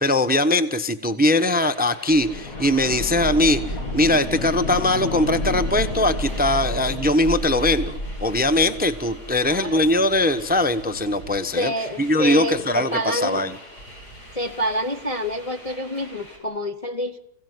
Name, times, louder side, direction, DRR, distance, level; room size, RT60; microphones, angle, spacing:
voice 1, 0.0-11.7 12.0-13.5, left 1 dB, 5° right, 11 dB, 0.8 m, -21 dB
sound 1, 1.3-16.4, equal, 75° left, 7.4 m, -43 dB
sound 2, 2.1-9.9 10.2-10.3, left 2 dB, 60° left, 2.1 m, -30 dB
voice 2, 9.4-9.8 11.6-13.4 14.3-17.2, equal, 25° left, 4 dB, 0.9 m, -27 dB
26.5 x 17.0 x 9.5 m, 0.85 s
omnidirectional pair, 1.7 m